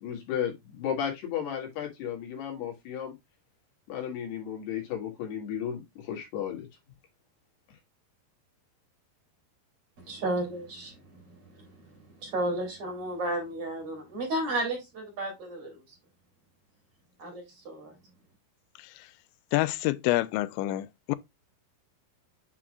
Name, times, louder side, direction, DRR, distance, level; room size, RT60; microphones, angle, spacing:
voice 1, 0.0-3.1 3.9-5.8 6.1-6.7, left 9 dB, 70° left, 4.2 m, -34 dB
voice 2, 10.0-15.8 17.2-17.9, right 1 dB, 35° right, 3.4 m, -33 dB
voice 3, 19.5-21.2, left 18 dB, 85° left, 2.9 m, -27 dB
8.2 x 5.8 x 2.4 m
omnidirectional pair, 5.0 m